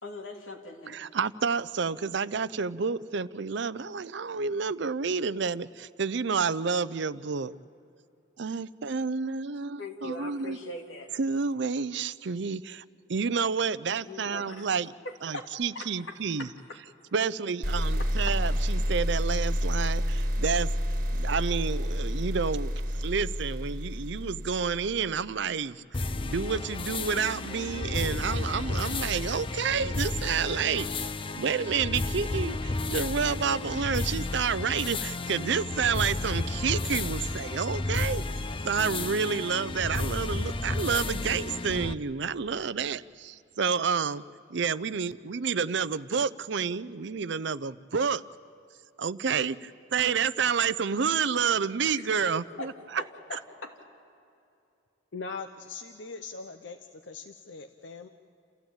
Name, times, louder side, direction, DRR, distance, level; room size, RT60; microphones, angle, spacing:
voice 1, 0.0-1.0 9.8-11.1 14.0-14.7 15.0-15.5 15.7-16.5 17.8-18.3 52.0-52.7 53.0-53.8, left 2 dB, 85° left, 2 dB, 2.7 m, -41 dB
voice 2, 0.9-7.5 8.4-10.6 11.2-12.8 13.1-14.9 15.2-16.5 17.1-20.7 21.1-30.9 31.4-38.2 38.6-44.2 44.5-48.2 49.0-52.7 53.3-53.4, right 6 dB, 65° right, 16 dB, 0.6 m, -29 dB
sound 1, 17.6-25.1, equal, 45° right, 1.5 m, -29 dB
sound 2, 25.9-41.9, left 2 dB, 25° left, 0.6 m, -32 dB
voice 3, 55.1-58.1, left 4 dB, 65° left, 7 dB, 0.8 m, -41 dB
28.5 x 15.5 x 8.9 m, 2.7 s
head